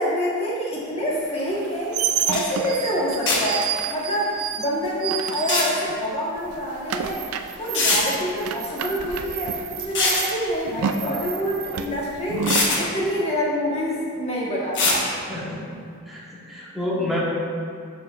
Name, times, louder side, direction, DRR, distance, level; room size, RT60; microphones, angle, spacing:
voice 1, 0.0-7.2 7.6-12.5 12.8-15.0, equal, 30° left, -5 dB, 1.3 m, -26 dB
Car Brakes sqeak screech squeal stop, 1.5-6.1 6.4-12.7, right 7 dB, 70° right, 0.4 m, -29 dB
sound 1, 2.0-2.1 2.3-2.4 3.3-3.6 5.3-5.7 7.0-7.1 7.7-8.0 9.8-10.3 11.8-11.9 12.4-12.8 14.7-15.0, left 3 dB, 55° left, 1.2 m, -21 dB
voice 2, 15.1-15.6 16.1-17.2, left 1 dB, ahead, -8 dB, 1.3 m, -29 dB
12.0 x 4.6 x 2.5 m, 2.2 s
head